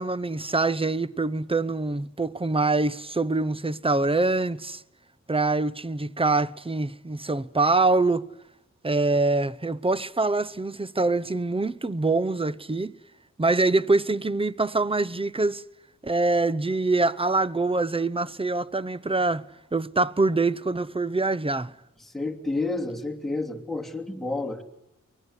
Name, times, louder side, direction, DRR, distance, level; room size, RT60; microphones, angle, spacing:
voice 1, 0.0-4.8 5.3-8.3 8.8-12.9 13.4-15.6 16.0-19.4 19.7-21.7, right 3 dB, 20° right, 0.8 m, -24 dB
voice 2, 22.0-24.6, left 2 dB, ahead, 3.0 m, -30 dB
23.5 x 19.5 x 9.7 m
wide cardioid pair, 60°, 30 cm